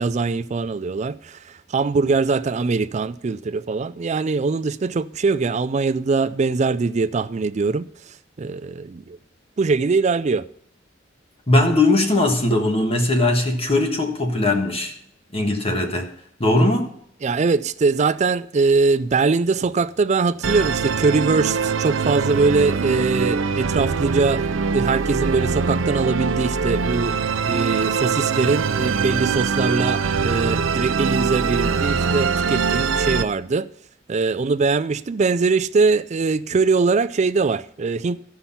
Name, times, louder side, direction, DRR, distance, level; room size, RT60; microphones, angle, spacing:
voice 1, 0.0-9.2 9.6-10.5 17.2-24.5 24.7-33.7 34.1-38.2, right 4 dB, 35° right, 0.4 m, -22 dB
voice 2, 11.5-15.0 15.3-16.1 16.4-16.9, left 2 dB, 30° left, 1.4 m, -19 dB
Musical instrument, 20.4-33.2, right 5 dB, 85° right, 0.6 m, -23 dB
13.0 x 5.7 x 5.7 m
head